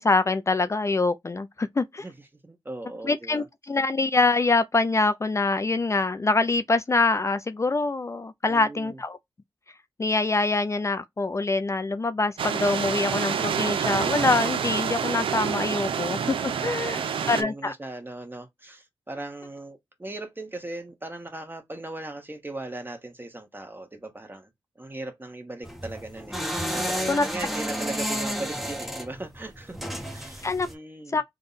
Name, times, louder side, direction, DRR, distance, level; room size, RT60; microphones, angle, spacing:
voice 1, 0.0-2.0 3.0-9.2 10.0-17.0 17.3-17.7 27.1-27.3 30.4-30.7 31.1-31.2, left 3 dB, 35° left, 0.4 m, -24 dB
voice 2, 2.4-3.5 8.5-9.0 16.5-24.5 24.8-26.4 26.7-31.2, right 2 dB, 25° right, 1.2 m, -38 dB
sound 1, 12.4-17.4, right 7 dB, 85° right, 0.4 m, -27 dB
sound 2, 25.6-30.7, equal, ahead, 0.9 m, -31 dB
3.6 x 2.2 x 3.9 m
cardioid pair, 60°, 9 cm